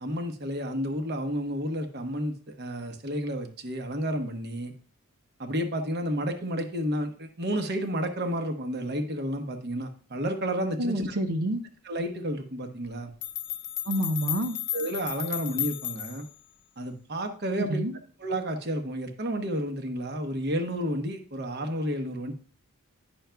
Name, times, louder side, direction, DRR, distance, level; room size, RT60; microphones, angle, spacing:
voice 1, 0.0-4.7 5.4-11.2 11.8-13.1 14.7-16.3 16.8-17.8 18.2-22.3, equal, 50° right, 6 dB, 1.0 m, -31 dB
voice 2, 10.8-11.6 13.8-14.6 17.7-18.0, right 1 dB, 80° right, 5 dB, 0.7 m, -28 dB
sound 1, 12.8-12.9 13.2-16.4, left 11 dB, 55° left, 0.5 m, -34 dB
10.5 x 6.2 x 2.3 m, 0.40 s
head